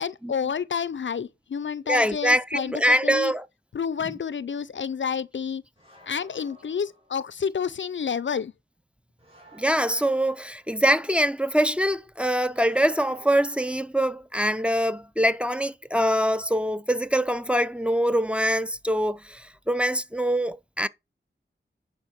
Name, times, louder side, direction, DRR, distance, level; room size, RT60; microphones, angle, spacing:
voice 1, 0.0-3.3 3.7-5.6 6.0-8.5, left 7 dB, 70° left, 0.5 m, -29 dB
voice 2, 1.9-3.4 9.5-20.9, equal, 5° right, 0.6 m, -24 dB
sound 1, 5.8-7.4 9.2-10.8 12.5-13.7, right 1 dB, 30° right, 4.5 m, -52 dB
10.5 x 4.6 x 5.1 m
wide cardioid pair, 65°, 20 cm